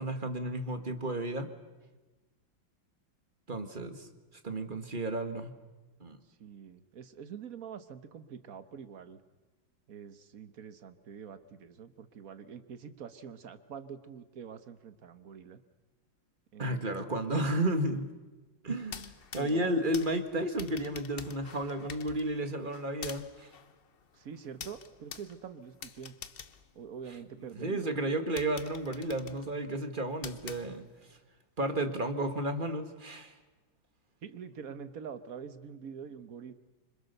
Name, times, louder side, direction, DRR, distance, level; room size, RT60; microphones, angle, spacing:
voice 1, 0.0-1.5 3.5-4.1 4.4-5.5 6.0-6.2 16.6-18.1 18.6-23.5 27.6-30.8 31.6-33.3, right 1 dB, 25° right, 8 dB, 1.6 m, -32 dB
voice 2, 6.3-9.2 9.9-15.6 16.5-17.2 19.4-19.8 24.1-26.1 26.7-28.2 34.2-36.5, right 7 dB, 50° right, 11 dB, 1.5 m, -46 dB
sound 1, 18.8-27.5 28.0-28.1 28.4-31.1, left 7 dB, 50° left, 0.6 m, -48 dB
26.5 x 25.5 x 6.8 m, 1.2 s
omnidirectional pair, 2.2 m